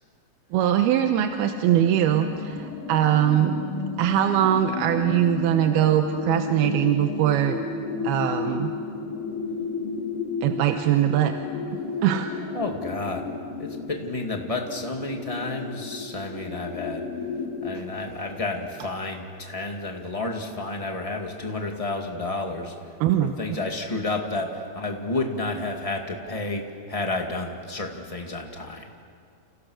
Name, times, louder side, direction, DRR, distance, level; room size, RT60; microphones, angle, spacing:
voice 1, 0.5-3.6 4.0-7.6 8.0-8.8 10.4-11.4 11.7-12.3 23.0-23.3, right 11 dB, 85° right, 6 dB, 2.9 m, -22 dB
sound 1, 1.2-17.8, left 4 dB, 60° left, 3.7 m, -33 dB
voice 2, 12.5-13.3 13.6-17.1 17.6-22.9 23.2-28.9, left 2 dB, 15° left, 2 dB, 1.3 m, -31 dB
29.5 x 29.5 x 6.5 m, 2.4 s
omnidirectional pair, 4.4 m